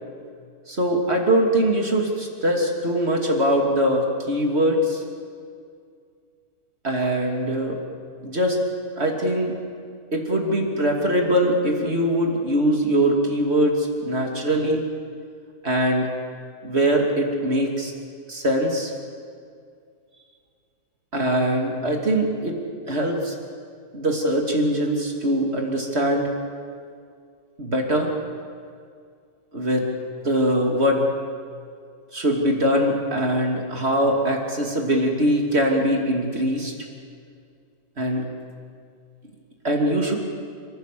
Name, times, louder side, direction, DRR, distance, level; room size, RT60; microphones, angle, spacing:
voice 1, 0.8-5.0 6.8-7.8 8.2-8.6 9.0-9.5 10.1-14.8 15.6-16.1 16.6-17.9 18.3-18.9 21.1-22.5 22.9-23.3 23.9-26.3 27.6-28.1 29.5-29.9 30.2-31.0 32.1-36.7 38.0-38.3 39.6-40.1, equal, 45° right, 1 dB, 3.0 m, -22 dB
29.5 x 15.5 x 6.9 m, 2.2 s
omnidirectional pair, 1.6 m